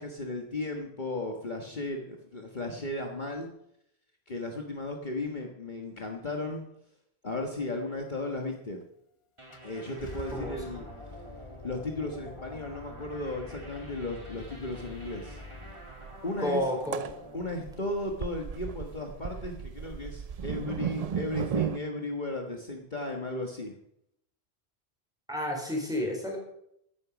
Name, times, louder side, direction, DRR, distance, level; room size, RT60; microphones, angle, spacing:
voice 1, 0.0-3.5 4.3-6.6 7.2-8.8 9.6-10.9 11.6-15.4 16.2-16.6 17.3-23.7, left 2 dB, 45° left, 2 dB, 1.6 m, -35 dB
Car / Engine starting, 8.8-8.9 9.5-15.7, left 3 dB, 30° left, 1.0 m, -46 dB
sound 1, 9.4-18.7, equal, 30° right, 2.7 m, -49 dB
sound 2, 14.3-14.5 14.8-14.9 15.1-21.8, right 8 dB, 50° right, 0.5 m, -35 dB
voice 2, 16.4-17.1 25.3-26.4, equal, 5° right, 0 dB, 4.4 m, -30 dB
14.5 x 11.0 x 5.2 m, 0.76 s
omnidirectional pair, 1.1 m